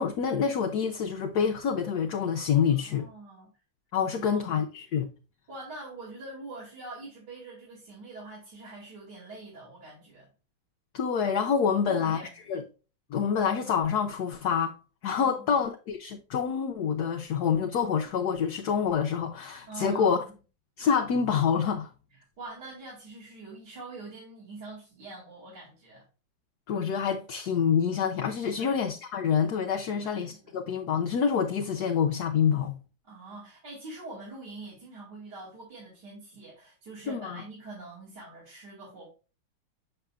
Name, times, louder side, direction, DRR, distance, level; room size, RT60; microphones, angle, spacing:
voice 1, 0.0-3.1 3.9-5.1 10.9-12.6 13.1-14.7 15.0-20.2 20.8-21.9 26.7-32.8 37.1-37.4, left 7 dB, 65° left, 1.1 m, -27 dB
voice 2, 2.7-3.5 4.1-4.6 5.5-10.3 11.8-12.5 15.2-15.6 19.7-20.3 22.1-26.0 28.6-28.8 29.9-30.6 33.0-39.1, right 3 dB, 60° right, 3.0 m, -44 dB
6.9 x 6.7 x 2.3 m
omnidirectional pair, 2.1 m